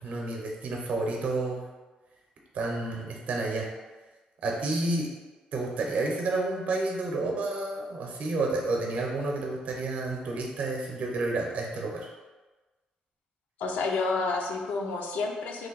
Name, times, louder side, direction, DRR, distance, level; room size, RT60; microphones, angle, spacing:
voice 1, 0.0-1.7 2.5-3.7 4.4-5.1 5.5-12.1, right 2 dB, 55° right, 0 dB, 0.6 m, -30 dB
voice 2, 13.6-15.7, left 3 dB, 85° left, 2 dB, 0.5 m, -30 dB
3.1 x 2.6 x 3.9 m, 1.2 s
cardioid pair, 135°, 3 cm